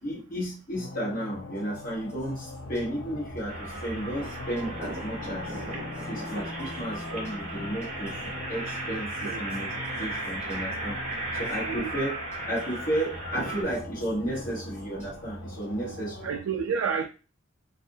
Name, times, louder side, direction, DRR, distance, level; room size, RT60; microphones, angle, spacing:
voice 1, 0.0-5.6 6.0-8.2 8.5-9.7 10.0-11.0 11.3-12.1 12.5-16.2, right 1 dB, 45° left, 1.0 m, -33 dB
sound 1, 0.7-16.4, left 3 dB, 80° left, 0.5 m, -42 dB
sound 2, 1.5-15.8, right 1 dB, 10° right, 1.0 m, -47 dB
sound 3, 3.5-13.6, right 2 dB, 35° right, 0.6 m, -36 dB
voice 2, 11.6-11.9 15.9-17.1, right 6 dB, 90° right, 0.3 m, -31 dB
2.5 x 2.0 x 2.6 m
head